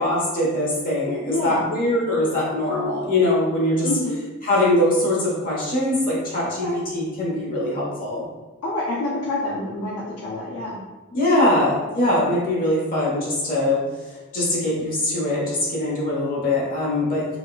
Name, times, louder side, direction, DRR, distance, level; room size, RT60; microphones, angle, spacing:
voice 1, 0.0-3.9 4.4-8.2 11.1-13.8 14.3-17.3, left 1 dB, 40° left, -6 dB, 1.1 m, -22 dB
voice 2, 1.3-1.7 3.8-4.2 6.6-6.8 8.6-10.8 11.1-11.4, left 2 dB, 80° left, -5 dB, 0.5 m, -27 dB
4.1 x 2.2 x 2.4 m, 1.2 s
head